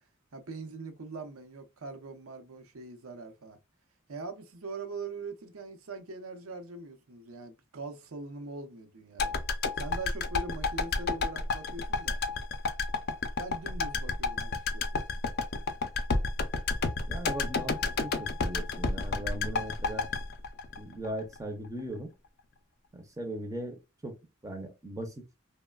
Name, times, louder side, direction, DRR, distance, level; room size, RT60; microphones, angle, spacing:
voice 1, 0.3-3.6 4.1-9.3 9.7-12.2 13.4-15.0, right 3 dB, 90° right, 0.7 m, -42 dB
sound 1, 9.2-21.4 21.6-21.7, left 4 dB, 50° left, 0.5 m, -31 dB
voice 2, 17.1-20.1 20.8-22.1 22.9-24.1 24.4-25.2, right 1 dB, 15° right, 0.5 m, -39 dB
3.1 x 2.1 x 2.2 m
head